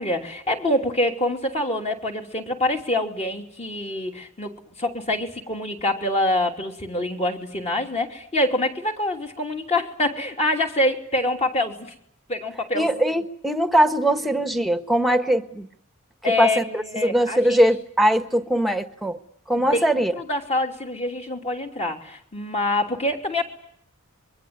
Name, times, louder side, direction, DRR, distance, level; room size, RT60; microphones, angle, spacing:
voice 1, 0.0-11.9 12.3-12.9 16.2-17.6 19.6-19.8 20.2-23.4, left 1 dB, 30° left, 3 dB, 3.2 m, -25 dB
voice 2, 12.7-15.7 16.2-19.2 19.5-20.1, right 1 dB, ahead, 10 dB, 1.5 m, -21 dB
25.5 x 23.0 x 9.6 m, 0.69 s
head